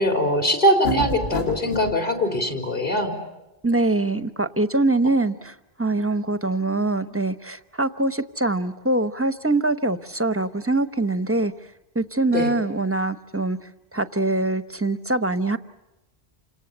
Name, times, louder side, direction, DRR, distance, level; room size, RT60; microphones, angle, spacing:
voice 1, 0.0-3.1 12.3-12.5, equal, 50° left, 3 dB, 4.5 m, -22 dB
sound 1, 0.8-2.0, left 2 dB, 75° left, 2.4 m, -29 dB
voice 2, 3.6-11.5 11.9-13.6 13.9-15.6, right 2 dB, 15° right, 11 dB, 0.9 m, -23 dB
29.0 x 26.5 x 7.0 m, 0.96 s
omnidirectional pair, 1.1 m